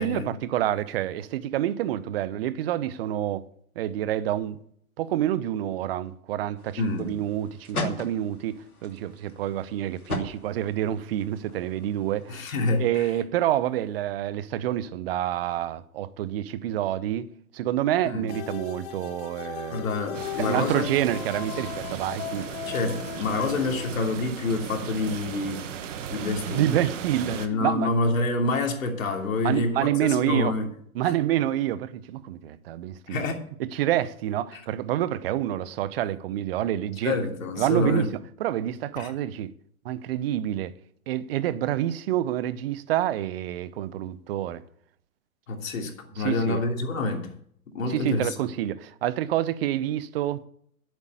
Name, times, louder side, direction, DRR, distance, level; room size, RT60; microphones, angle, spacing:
voice 1, 0.0-3.4 3.8-4.6 5.0-12.4 12.8-17.3 17.5-19.9 20.4-22.5 26.5-27.9 29.4-30.5 30.9-33.3 33.6-37.2 37.6-38.1 38.4-39.5 39.8-40.7 41.1-44.6 46.2-46.6 47.9-50.4, right 12 dB, 45° right, 0.9 m, -28 dB
sound 1, 6.6-12.9, left 2 dB, 90° left, 3.0 m, -39 dB
voice 2, 6.8-7.1 12.3-13.1 18.0-18.2 19.7-20.9 22.7-25.7 26.1-26.8 27.3-30.7 31.0-31.1 33.1-33.4 34.5-34.6 37.0-38.1 39.0-39.1 45.5-47.3 47.7-48.3, left 3 dB, 65° left, 3.1 m, -27 dB
sound 2, 18.3-23.9, left 10 dB, 50° left, 1.3 m, -37 dB
sound 3, 20.1-27.5, right 8 dB, 60° right, 1.5 m, -37 dB
11.0 x 8.2 x 8.2 m
hypercardioid pair, 120°, 43 cm